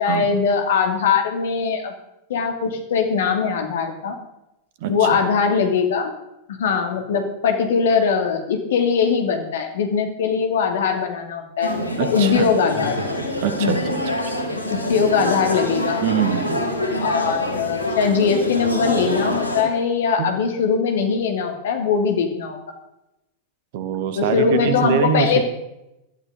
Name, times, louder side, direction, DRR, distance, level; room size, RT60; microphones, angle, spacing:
voice 1, 0.0-1.9 2.3-4.2 4.9-6.1 6.5-13.0 13.6-13.8 14.9-16.0 17.0-22.6 24.2-25.4, left 6 dB, 60° left, 5 dB, 2.6 m, -21 dB
sound 1, 11.6-19.6, left 1 dB, 85° right, 2.8 m, -26 dB
voice 2, 12.0-12.5 13.4-14.3 16.0-16.6 20.2-20.4 23.7-25.4, right 7 dB, 50° right, 10 dB, 1.7 m, -24 dB
18.0 x 12.5 x 3.9 m, 0.89 s
figure-of-eight pair, 90°, 0 cm